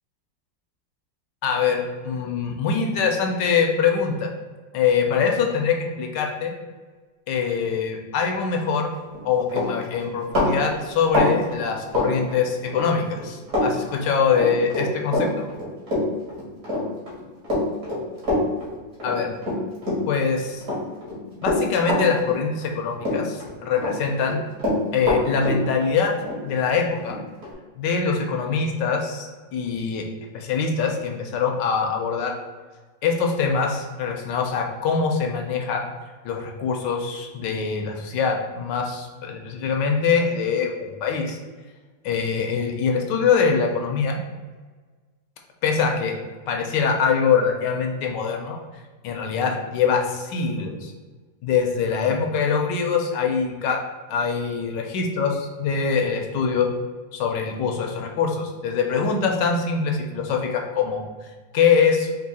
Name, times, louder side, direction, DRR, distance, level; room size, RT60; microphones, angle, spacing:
voice 1, 1.4-4.3 4.7-6.5 7.3-8.9 9.2-15.5 19.0-19.3 20.1-20.6 21.4-24.4 24.9-26.1 26.4-27.2 27.8-30.1 30.3-32.3 33.0-35.9 36.2-41.4 42.0-44.2 45.6-46.2 46.5-48.6 49.0-50.9 51.4-53.8 54.1-56.7 57.1-61.0 61.5-62.1, left 6 dB, 75° left, 2 dB, 1.2 m, -23 dB
Run, 9.0-9.2 9.5-12.8 13.1-13.7 13.9-20.3 20.6-22.7 23.0-23.9 24.2-27.5, left 1 dB, 50° right, 2.2 m, -25 dB
4.5 x 2.7 x 4.0 m, 1.4 s
omnidirectional pair, 2.1 m